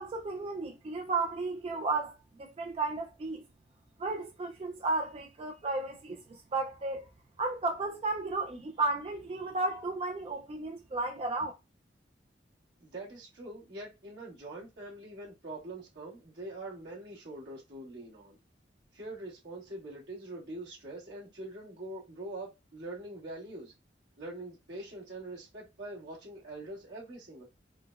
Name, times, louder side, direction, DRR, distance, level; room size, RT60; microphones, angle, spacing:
voice 1, 0.0-3.4 4.0-7.1 7.4-11.5, right 3 dB, 35° right, 0.3 m, -33 dB
voice 2, 12.8-18.4 18.9-23.7 24.2-27.4, right 2 dB, 75° right, 1.4 m, -44 dB
3.7 x 2.1 x 2.3 m
head